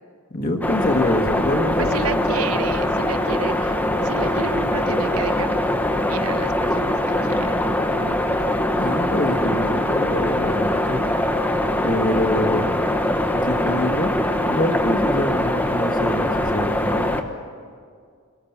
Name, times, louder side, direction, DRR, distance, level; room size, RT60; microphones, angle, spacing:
voice 1, 0.3-2.2 8.8-11.0 11.8-12.7 13.3-14.1 14.5-17.2, left 1 dB, 40° left, 2 dB, 1.6 m, -25 dB
sound 1, 0.6-17.2, left 1 dB, 10° left, 1.0 m, -22 dB
voice 2, 1.8-5.6 6.1-8.4, right 5 dB, 75° right, 10 dB, 1.0 m, -32 dB
21.0 x 19.5 x 7.3 m, 2.1 s
head